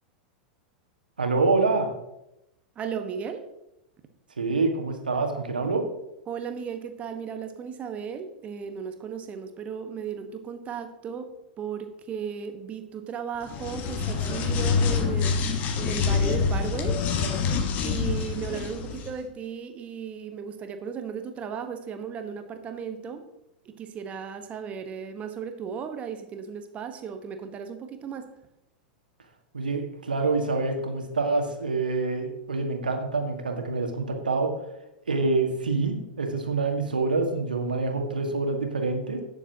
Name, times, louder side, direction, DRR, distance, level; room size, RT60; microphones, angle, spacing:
voice 1, 1.2-1.9 4.4-5.9 29.5-34.5 35.1-39.2, right 3 dB, 80° right, 4 dB, 1.7 m, -26 dB
voice 2, 2.8-3.4 6.3-11.3 11.6-17.0 17.8-23.3 23.6-28.2, right 7 dB, 30° right, 7 dB, 1.1 m, -35 dB
sound 1, 13.4-19.1, left 5 dB, 35° left, 1.2 m, -26 dB
17.5 x 7.0 x 2.8 m, 0.86 s
figure-of-eight pair, 90°, 5 cm